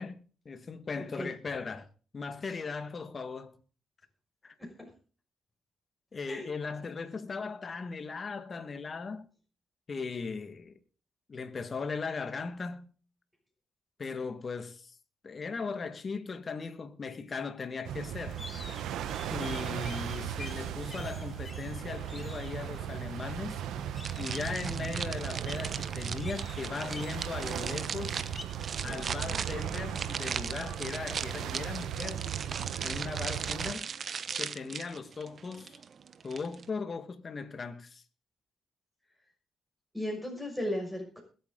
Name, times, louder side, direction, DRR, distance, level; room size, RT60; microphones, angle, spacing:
voice 1, 0.0-1.9 2.1-3.6 4.4-4.5 6.1-9.3 9.9-10.7 11.3-12.9 14.0-15.0 15.2-18.4 19.3-23.6 24.2-28.2 28.8-32.2 32.8-33.9 34.4-35.8 36.2-38.0, left 4 dB, 40° left, 1.7 m, -38 dB
sound 1, 17.8-33.7, right 10 dB, 80° right, 0.9 m, -37 dB
sound 2, 18.3-28.5, left 3 dB, 25° left, 2.0 m, -49 dB
sound 3, 24.0-36.7, right 6 dB, 55° right, 1.0 m, -38 dB
voice 2, 39.9-41.2, left 1 dB, ahead, 6.1 m, -35 dB
21.5 x 8.6 x 3.8 m
supercardioid pair, 65°, 0 cm